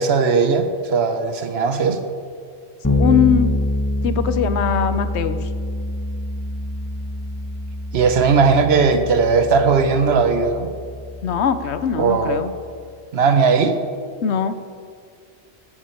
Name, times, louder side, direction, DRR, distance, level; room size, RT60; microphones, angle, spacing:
voice 1, 0.0-2.0 7.9-10.7 12.0-12.4 13.1-13.8, right 5 dB, 70° right, 8 dB, 1.1 m, -17 dB
Bass guitar, 2.8-12.5, left 1 dB, 15° left, 1.3 m, -26 dB
voice 2, 3.0-3.5 4.0-5.5 11.2-12.5 14.2-14.6, left 8 dB, 75° left, 11 dB, 1.0 m, -20 dB
13.0 x 10.5 x 4.5 m, 2.2 s
omnidirectional pair, 1.1 m